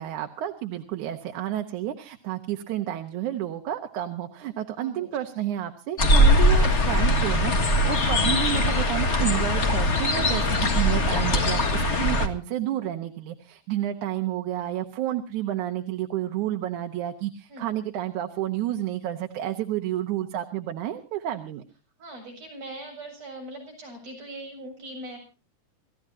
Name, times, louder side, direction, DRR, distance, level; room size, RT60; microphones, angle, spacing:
voice 1, 0.0-21.6, right 12 dB, 85° right, 5 dB, 2.6 m, -30 dB
voice 2, 4.8-5.4 17.5-17.7 22.0-25.2, right 1 dB, 60° right, 1 dB, 8.9 m, -41 dB
sound 1, 6.0-12.3, left 1 dB, 30° left, 1.5 m, -21 dB
29.0 x 14.5 x 2.7 m, 0.33 s
omnidirectional pair, 3.3 m